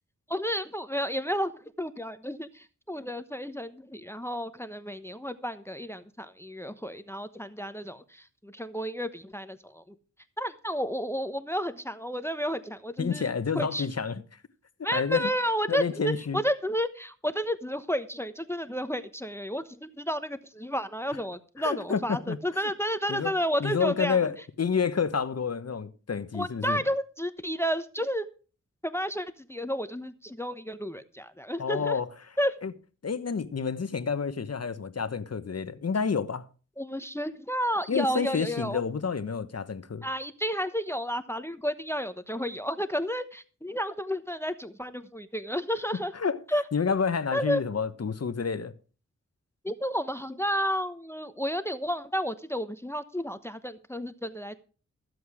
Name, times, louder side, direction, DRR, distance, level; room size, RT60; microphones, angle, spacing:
voice 1, 0.3-1.5 1.8-9.9 10.4-13.9 14.8-24.3 26.3-28.2 28.8-32.0 32.4-32.5 36.8-38.8 40.0-46.1 46.5-46.6 47.3-47.6 49.6-54.6, equal, 10° left, 1.0 m, -31 dB
voice 2, 13.0-14.2 14.9-15.3 15.7-16.4 21.6-22.4 23.1-23.3 23.6-26.8 31.6-32.1 32.6-32.7 33.0-36.4 37.9-40.0 46.1-46.4 46.7-48.7, left 6 dB, 55° left, 1.2 m, -29 dB
14.5 x 7.9 x 4.9 m
cardioid pair, 50°, 30 cm